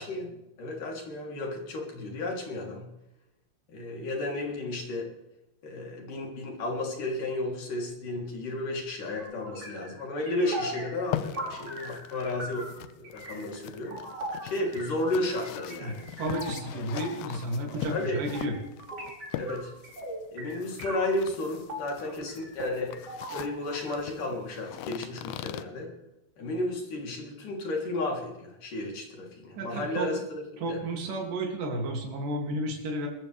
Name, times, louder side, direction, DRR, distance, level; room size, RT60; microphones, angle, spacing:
voice 1, 0.0-2.9 3.7-5.1 5.6-12.6 13.1-14.0 14.4-16.1 17.9-18.2 19.3-19.7 20.3-22.9 23.3-25.9 26.4-30.8, left 2 dB, 65° left, -1 dB, 4.9 m, -33 dB
sound 1, 9.2-21.3 21.7-24.1, right 1 dB, 30° right, 5.8 m, -40 dB
sound 2, 11.0-25.6, left 13 dB, 90° left, 2.5 m, -41 dB
voice 2, 16.2-18.6 29.6-30.1 30.6-33.1, right 1 dB, 70° right, 0 dB, 4.3 m, -32 dB
23.5 x 14.5 x 3.5 m, 0.92 s
omnidirectional pair, 4.0 m